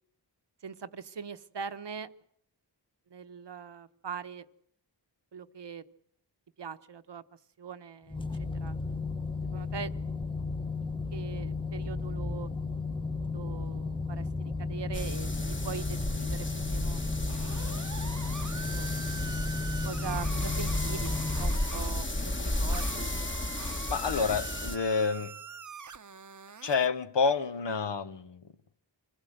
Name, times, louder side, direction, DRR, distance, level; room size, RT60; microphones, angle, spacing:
voice 1, 0.6-2.1 3.1-4.5 5.3-5.8 6.6-7.2 7.6-8.9 9.5-9.9 10.8-12.5 13.3-17.0 17.7-17.9 18.5-18.9 19.8-23.1, right 6 dB, 70° right, 1.0 m, -42 dB
sound 1, 8.1-21.5, left 4 dB, 10° left, 0.9 m, -34 dB
sound 2, 14.9-24.8, left 1 dB, 25° left, 1.5 m, -33 dB
sound 3, 17.3-21.9 22.7-26.9, right 6 dB, 45° right, 0.8 m, -44 dB
voice 2, 23.9-25.3 26.6-28.4, left 5 dB, 75° left, 1.0 m, -28 dB
25.0 x 16.0 x 7.9 m
wide cardioid pair, 75°, 43 cm